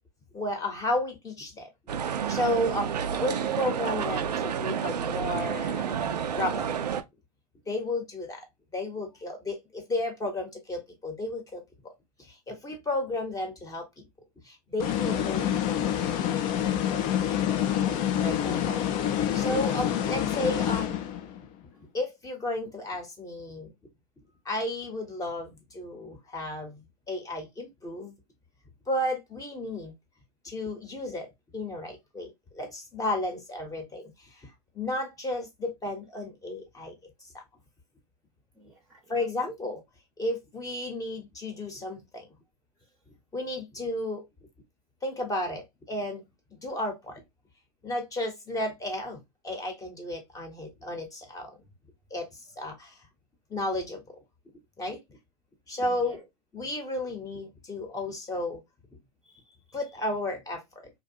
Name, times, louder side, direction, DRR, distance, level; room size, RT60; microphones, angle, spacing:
voice 1, 0.3-1.7 2.1-6.7 7.7-8.5 8.7-11.9 12.2-14.1 14.4-15.8 18.2-18.8 19.3-21.0 21.9-23.7 24.4-28.2 28.9-29.9 30.4-31.3 31.5-36.9 39.1-39.8 40.2-42.3 43.3-44.2 45.0-46.2 46.6-47.2 47.8-49.2 49.4-51.6 52.1-53.0 53.5-54.0 54.8-55.0 55.7-56.2 56.5-58.6 59.7-60.9, left 1 dB, 15° left, 0.8 m, -33 dB
sound 1, 1.9-7.0, right 8 dB, 90° right, 0.4 m, -30 dB
sound 2, 14.8-21.4, left 10 dB, 40° left, 0.5 m, -27 dB
voice 2, 18.4-18.8 19.3-20.0 21.6-21.9 38.5-39.2 42.8-42.9 55.7-56.2 59.2-59.8, right 2 dB, 10° right, 0.7 m, -53 dB
2.6 x 2.2 x 2.6 m
hypercardioid pair, 100°, 20 cm